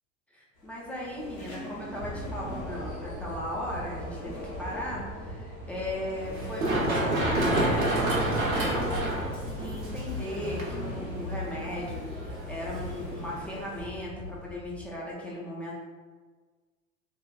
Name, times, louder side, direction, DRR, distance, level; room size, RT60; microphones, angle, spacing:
voice 1, 0.3-15.8, left 1 dB, 5° left, -6 dB, 0.4 m, -37 dB
Train stopping, 0.6-13.9, equal, 80° left, 0.9 m, -44 dB
sound 1, 2.0-14.9, left 1 dB, 55° left, 0.9 m, -41 dB
Run, 6.3-13.9, right 1 dB, 80° right, 0.8 m, -30 dB
3.0 x 2.2 x 2.2 m, 1.4 s
figure-of-eight pair, 80°, 41 cm